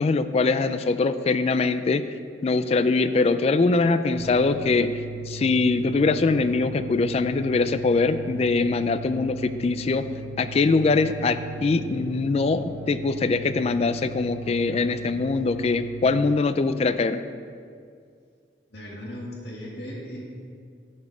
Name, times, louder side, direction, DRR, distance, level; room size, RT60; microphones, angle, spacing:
voice 1, 0.0-2.0 2.4-4.9 5.3-10.0 10.4-17.2, left 3 dB, 35° left, 11 dB, 0.3 m, -22 dB
sound 1, 4.2-16.4, right 3 dB, 60° right, 0.4 m, -39 dB
voice 2, 18.7-20.2, equal, 60° left, -3 dB, 1.9 m, -37 dB
10.5 x 5.5 x 4.8 m, 2.2 s
head